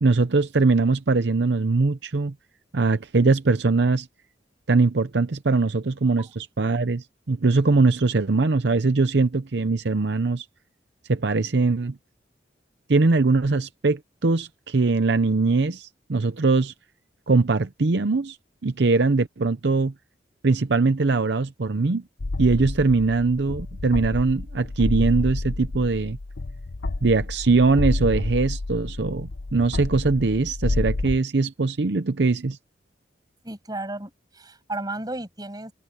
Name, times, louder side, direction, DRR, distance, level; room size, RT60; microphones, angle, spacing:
voice 1, 0.0-2.3 2.7-4.1 4.7-10.5 11.1-12.0 12.9-16.7 17.3-18.4 18.6-19.9 20.4-22.0 22.4-26.2 27.0-32.6, right 3 dB, 70° right, 0.7 m, -21 dB
sound 1, 22.2-31.2, left 2 dB, 85° left, 0.8 m, -29 dB
voice 2, 33.4-34.1 34.4-35.7, right 2 dB, 25° right, 7.3 m, -33 dB
head